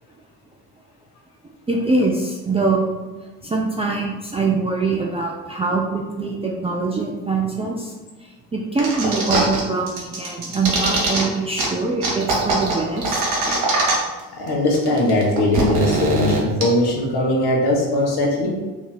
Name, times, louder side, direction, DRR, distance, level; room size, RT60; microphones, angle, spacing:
voice 1, 1.4-3.0 3.4-7.9 8.2-13.2, right 3 dB, 15° right, -2 dB, 0.4 m, -23 dB
sound 1, 8.8-9.6 9.9-11.2 11.6-11.7 12.0-14.2 14.5-14.6 14.7-16.6, right 2 dB, 75° right, 1.0 m, -22 dB
voice 2, 14.3-18.6, left 1 dB, 50° left, -1 dB, 1.2 m, -20 dB
3.0 x 2.7 x 3.8 m, 1.2 s
figure-of-eight pair, 45°, 48 cm